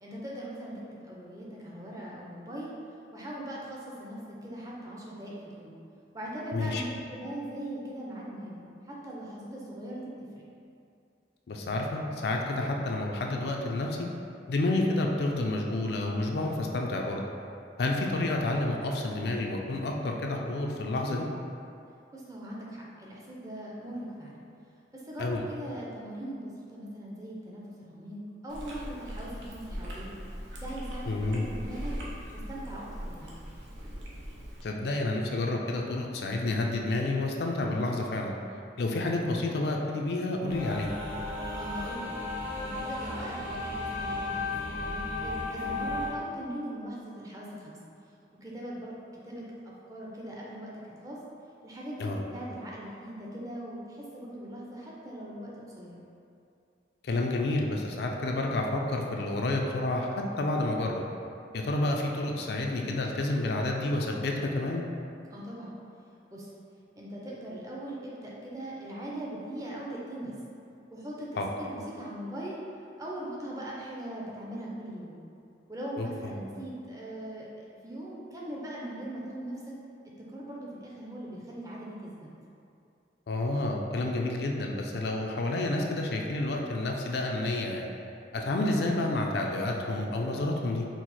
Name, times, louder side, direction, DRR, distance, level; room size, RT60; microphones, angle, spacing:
voice 1, 0.0-2.8 3.1-5.7 6.1-10.4 22.1-24.4 24.9-30.1 30.6-31.9 32.3-33.5 41.5-42.1 42.3-47.8 48.4-51.2 51.6-56.0 65.3-65.8 66.3-66.5 67.0-70.3 70.9-72.6 73.0-75.1 75.7-77.5 77.8-79.8 80.2-82.3, right 1 dB, 20° right, -5 dB, 0.5 m, -40 dB
voice 2, 6.5-6.8 11.5-14.0 14.5-17.2 17.8-21.3 25.2-25.4 31.1-31.5 34.6-38.3 38.8-40.9 52.0-52.2 57.0-61.0 61.5-64.8 71.4-71.5 76.0-76.1 83.3-87.9 88.3-90.9, left 2 dB, 65° left, 1 dB, 0.4 m, -29 dB
Chewing mastication, 28.5-34.6, equal, 85° right, 0.7 m, -40 dB
sound 1, 40.4-46.1, left 2 dB, 55° right, 1.1 m, -34 dB
4.6 x 2.1 x 4.1 m, 2.5 s
head